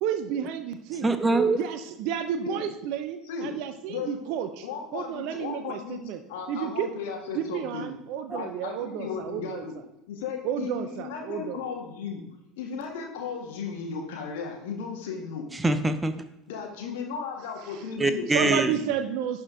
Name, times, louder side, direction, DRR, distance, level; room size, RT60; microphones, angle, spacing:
voice 1, 0.0-1.2 1.5-6.2 6.5-6.9 7.3-9.8 10.4-11.6 17.6-17.8 18.3-19.4, right 9 dB, 55° right, 8 dB, 0.6 m, -31 dB
voice 2, 0.9-1.6 15.5-16.1 18.0-18.8, right 2 dB, 15° right, 9 dB, 0.8 m, -24 dB
voice 3, 4.6-6.0 6.3-7.9 8.3-9.7 10.1-12.2 12.6-15.4 16.5-18.7, left 6 dB, 65° left, 2 dB, 1.6 m, -35 dB
11.0 x 4.5 x 3.7 m, 0.90 s
figure-of-eight pair, 70°, 0 cm